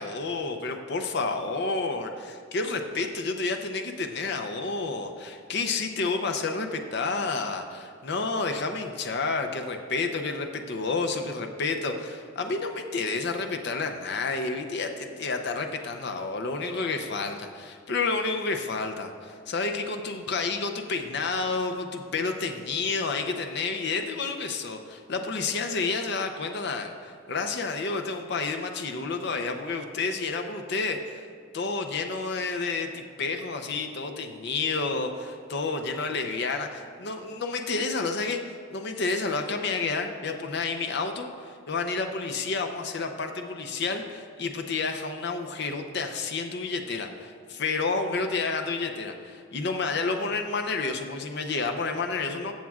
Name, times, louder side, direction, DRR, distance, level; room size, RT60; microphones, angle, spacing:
voice 1, 0.0-31.3 31.5-52.5, left 4 dB, 60° left, 5 dB, 0.6 m, -30 dB
14.5 x 7.4 x 2.4 m, 2.3 s
head